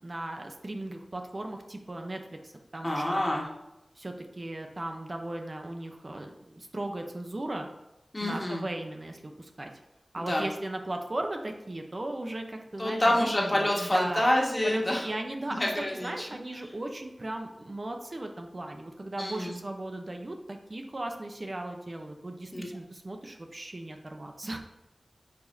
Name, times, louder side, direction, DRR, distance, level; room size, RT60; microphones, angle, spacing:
voice 1, 0.0-3.2 4.0-7.7 8.2-9.7 10.1-14.3 14.6-15.6 16.0-24.6, right 1 dB, 45° right, 4 dB, 0.8 m, -37 dB
voice 2, 2.8-3.4 8.1-8.6 10.2-10.4 12.8-15.0 15.6-16.1 19.2-19.6 22.5-22.7, left 1 dB, 30° left, -2 dB, 1.7 m, -27 dB
9.2 x 4.9 x 2.7 m, 0.90 s
wide cardioid pair, 65°, 0 cm